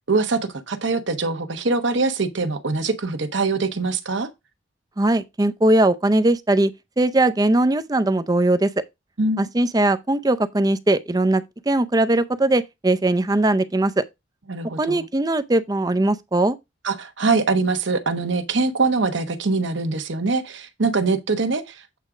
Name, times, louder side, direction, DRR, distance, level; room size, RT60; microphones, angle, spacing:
voice 1, 0.1-4.3 9.2-9.5 14.5-15.1 16.8-22.0, right 3 dB, 70° right, 1.0 m, -23 dB
voice 2, 5.0-6.7 7.0-8.7 9.4-14.0 14.8-16.6, right 2 dB, 20° right, 0.5 m, -20 dB
8.3 x 3.6 x 4.8 m
head